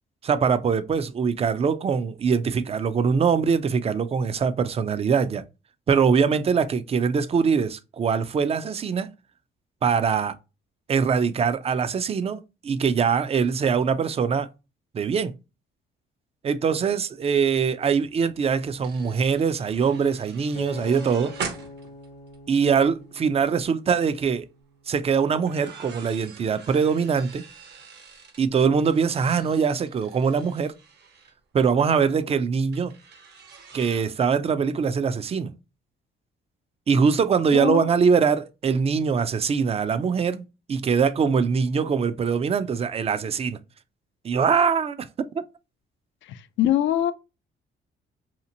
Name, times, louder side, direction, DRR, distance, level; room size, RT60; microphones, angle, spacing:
voice 1, 0.2-5.4 5.9-9.1 9.8-10.3 10.9-14.5 14.9-15.3 16.4-21.3 22.5-24.5 24.9-27.4 28.4-30.7 31.5-32.9 33.7-35.5 36.9-40.4 40.7-43.6 44.2-45.1, right 6 dB, 30° right, 0.3 m, -23 dB
sound 1, 18.0-18.1 18.3-23.0 23.4-23.6 25.3-31.3 32.7-34.0, right 6 dB, 60° right, 0.8 m, -43 dB
Acoustic guitar, 20.6-24.9 25.5-25.8, left 3 dB, 50° left, 0.7 m, -43 dB
voice 2, 37.5-37.9 46.3-47.1, left 12 dB, 75° left, 0.4 m, -23 dB
2.8 x 2.4 x 2.6 m
cardioid pair, 90°, 20 cm